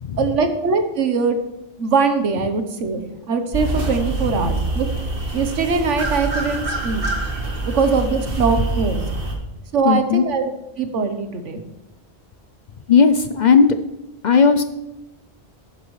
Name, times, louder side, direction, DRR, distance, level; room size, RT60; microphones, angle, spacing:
voice 1, 0.2-1.4 1.8-4.9 5.3-7.0 7.6-9.3 9.7-10.5 10.8-11.6, right 4 dB, 85° right, 8 dB, 1.3 m, -21 dB
sound 1, 3.5-9.3, right 2 dB, 50° right, 1.7 m, -25 dB
voice 2, 9.8-10.3 12.9-13.8 14.2-14.6, left 5 dB, 55° left, 9 dB, 0.5 m, -15 dB
12.0 x 9.4 x 3.2 m, 0.94 s
omnidirectional pair, 1.2 m